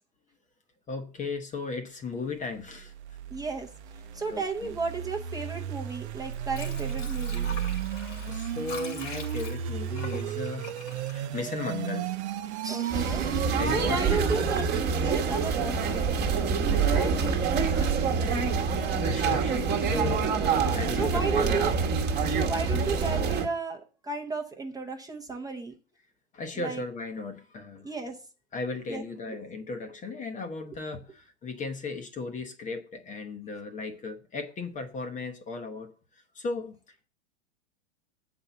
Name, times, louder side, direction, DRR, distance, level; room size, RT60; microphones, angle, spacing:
voice 1, 0.9-2.9 4.1-4.7 8.3-10.7 11.1-12.2 13.5-14.2 16.7-17.2 18.8-20.3 20.6-21.6 26.3-27.9 28.5-36.8, left 3 dB, 20° left, 1.0 m, -36 dB
sound 1, 2.7-14.9, right 10 dB, 65° right, 0.8 m, -34 dB
voice 2, 3.3-3.7 4.1-7.6 12.6-16.0 16.9-17.3 17.6-18.1 20.9-21.7 22.3-25.7 26.6-26.8 27.8-28.2 28.9-29.3, right 3 dB, 10° right, 0.9 m, -34 dB
Water / Sink (filling or washing), 6.2-12.0 12.4-12.5, left 3 dB, 80° left, 2.4 m, -43 dB
sound 2, 12.9-23.5, right 5 dB, 25° right, 1.4 m, -26 dB
7.7 x 4.4 x 6.9 m
hypercardioid pair, 110°, 36 cm